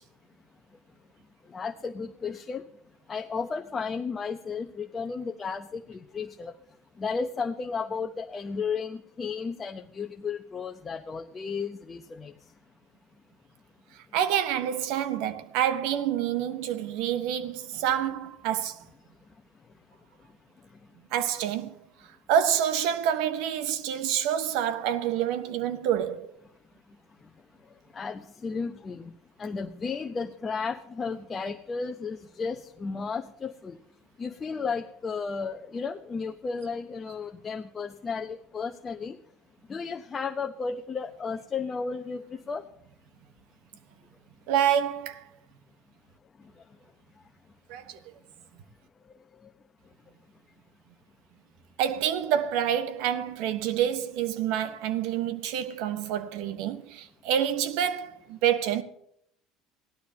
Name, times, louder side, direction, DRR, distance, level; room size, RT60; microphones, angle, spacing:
voice 1, 1.5-2.6 3.1-6.5 7.0-12.3 27.9-29.1 29.4-33.8 34.2-39.2 39.7-42.6, left 5 dB, 30° left, 0.8 m, -33 dB
voice 2, 14.1-18.8 21.1-21.8 22.3-26.3 44.5-45.3 47.7-48.0 51.8-58.8, right 10 dB, 70° right, 1.1 m, -27 dB
18.0 x 12.0 x 2.8 m
hypercardioid pair, 80°, 0 cm